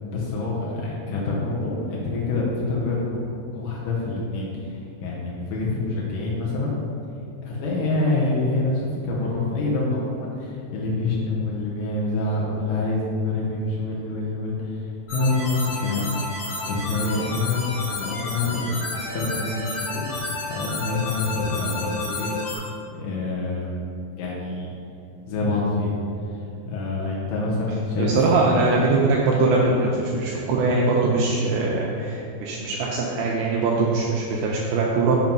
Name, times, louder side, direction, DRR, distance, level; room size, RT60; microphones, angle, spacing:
voice 1, 0.0-6.8 7.4-16.0 16.6-20.0 20.5-22.3 23.0-23.8 24.1-24.7 25.3-26.0 26.3-26.4 26.7-28.1 32.7-32.8, left 2 dB, 90° left, -5 dB, 1.8 m, -26 dB
sound 1, 15.1-22.6, left 2 dB, 70° left, 3.5 m, -31 dB
voice 2, 28.0-35.2, right 3 dB, 85° right, -3 dB, 2.4 m, -22 dB
7.3 x 3.0 x 5.2 m, 2.6 s
omnidirectional pair, 4.8 m